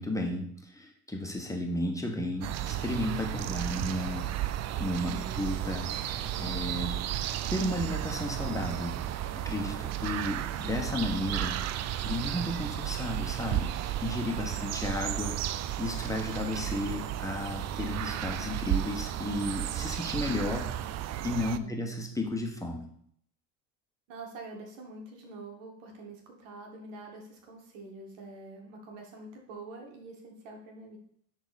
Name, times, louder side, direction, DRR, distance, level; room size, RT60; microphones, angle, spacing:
voice 1, 0.0-4.3 4.7-7.0 7.5-9.0 9.3-11.6 12.0-13.7 14.0-20.7 21.2-22.9, left 1 dB, 10° left, 2 dB, 1.6 m, -33 dB
sound 1, 2.4-21.6, right 12 dB, 45° right, 0.5 m, -33 dB
voice 2, 4.9-5.5 9.8-10.1 21.4-21.8 24.1-31.0, right 2 dB, 85° right, 1 dB, 2.1 m, -46 dB
10.5 x 4.1 x 4.3 m, 0.65 s
supercardioid pair, 90°, 37 cm